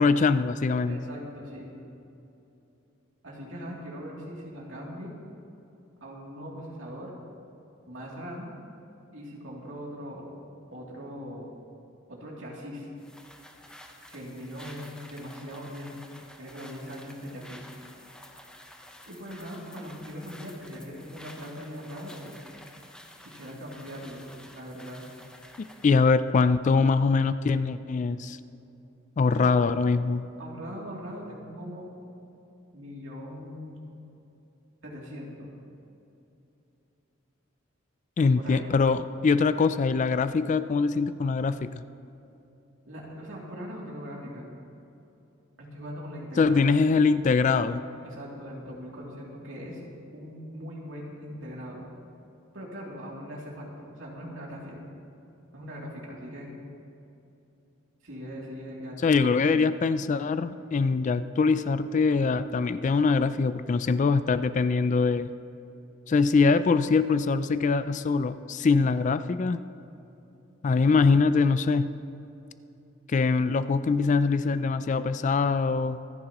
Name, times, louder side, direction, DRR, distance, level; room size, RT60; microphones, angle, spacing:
voice 1, 0.0-1.0 25.6-28.4 29.2-30.2 38.2-41.7 46.4-47.8 59.0-65.3 66.1-69.6 70.6-71.9 73.1-76.0, left 4 dB, 40° left, 13 dB, 0.3 m, -23 dB
voice 2, 0.9-1.7 3.2-5.1 6.0-7.1 7.9-8.5 9.1-10.3 10.7-11.5 12.1-12.9 14.1-16.0 16.4-17.7 19.1-22.3 23.2-24.2 24.5-25.0 29.4-29.5 30.4-31.9 32.7-34.0 34.8-35.5 38.4-38.7 42.9-44.5 45.6-46.7 48.0-49.8 50.1-51.8 52.5-54.8 55.5-56.5 58.0-59.3, equal, 70° right, -4 dB, 2.8 m, -40 dB
sound 1, 13.0-26.0, left 1 dB, 5° left, 0.8 m, -50 dB
25.0 x 10.5 x 3.0 m, 2.8 s
head